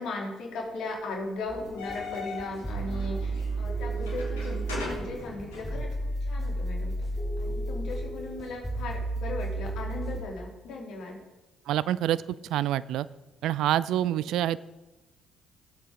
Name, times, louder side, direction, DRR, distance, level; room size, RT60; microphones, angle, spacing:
voice 1, 0.0-7.0 7.4-11.2, left 2 dB, 65° left, -1 dB, 3.0 m, -37 dB
sound 1, 1.5-6.1, left 3 dB, 85° left, 2.9 m, -40 dB
sound 2, 1.5-10.2, right 2 dB, 5° left, 3.4 m, -33 dB
voice 2, 11.7-12.2 12.5-13.1 13.4-14.6, right 12 dB, 65° right, 18 dB, 0.4 m, -26 dB
19.0 x 8.2 x 3.7 m, 1.1 s
hypercardioid pair, 45°, 0 cm